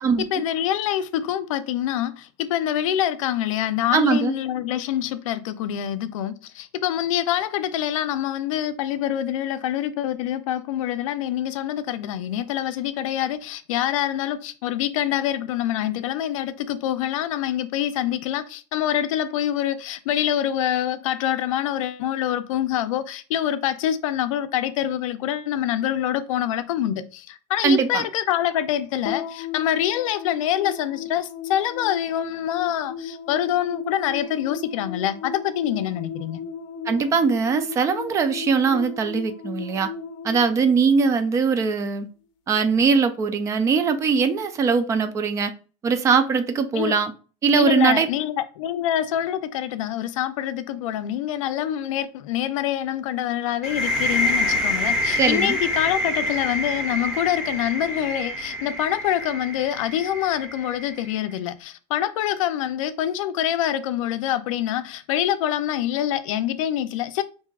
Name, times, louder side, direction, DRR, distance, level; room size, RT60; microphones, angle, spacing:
voice 1, 0.2-36.4 46.7-47.0 47.6-67.2, left 11 dB, 90° left, 0.5 m, -25 dB
voice 2, 3.9-4.4 27.6-28.0 36.9-39.9 40.2-42.1 42.5-45.5 45.8-47.1 47.4-48.1 55.2-55.6, right 5 dB, 20° right, 0.3 m, -21 dB
sound 1, 29.0-41.6, left 5 dB, 50° left, 0.6 m, -36 dB
sound 2, 53.6-61.2, left 1 dB, 5° right, 1.1 m, -26 dB
5.8 x 2.7 x 2.3 m
supercardioid pair, 155°, 16 cm